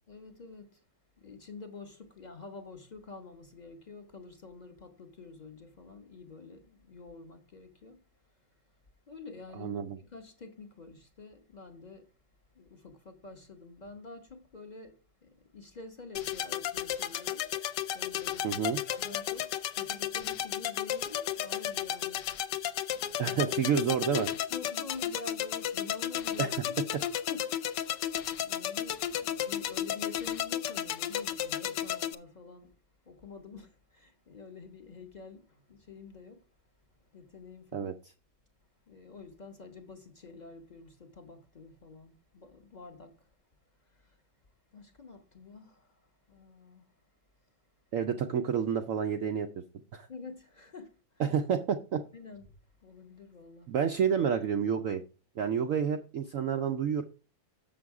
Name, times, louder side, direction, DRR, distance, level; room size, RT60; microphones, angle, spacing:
voice 1, 0.1-0.8 1.2-8.1 8.3-8.6 9.1-12.1 12.5-17.5 17.9-22.3 22.9-23.4 24.5-26.7 27.3-28.1 28.4-32.8 33.0-36.5 37.0-37.9 38.9-43.3 43.8-44.2 44.7-47.0 50.1-51.2 52.1-52.6 52.8-53.7, left 4 dB, 45° left, 0.5 m, -48 dB
voice 2, 9.6-10.0 18.4-18.8 23.2-24.3 26.4-26.5 37.7-37.9 47.9-49.5 49.9-50.1 51.2-52.0 53.7-55.0 55.4-57.0, right 7 dB, 80° right, 0.7 m, -29 dB
sound 1, 16.2-32.2, left 11 dB, 75° left, 1.2 m, -33 dB
7.1 x 6.2 x 4.7 m
omnidirectional pair, 2.0 m